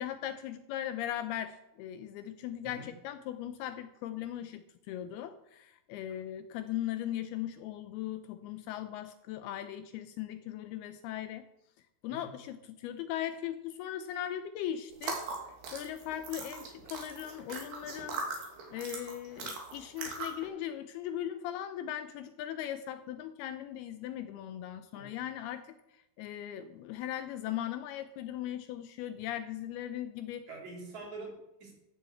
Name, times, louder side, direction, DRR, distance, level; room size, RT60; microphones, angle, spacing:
voice 1, 0.0-11.4 12.0-15.2 15.7-18.2 18.7-30.5, left 11 dB, 80° left, 10 dB, 2.4 m, -39 dB
sound 1, 14.9-20.5, right 4 dB, 70° right, 4.3 m, -40 dB
voice 2, 30.5-31.7, right 2 dB, 45° right, -1 dB, 4.2 m, -45 dB
13.5 x 7.3 x 7.8 m, 0.86 s
omnidirectional pair, 4.8 m